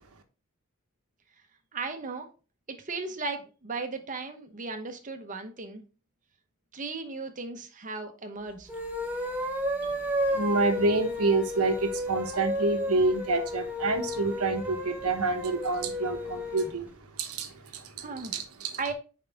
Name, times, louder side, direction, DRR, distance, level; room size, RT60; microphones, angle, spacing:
voice 1, 1.7-2.3 2.7-5.8 6.7-8.7 17.7-17.8 18.0-18.4 18.8-18.9, right 4 dB, 35° right, 0.9 m, -36 dB
sound 1, 8.6-16.8, equal, 5° right, 1.1 m, -32 dB
voice 2, 10.3-16.9 17.2-18.8, right 3 dB, 85° right, 1.1 m, -28 dB
5.5 x 4.9 x 3.5 m
head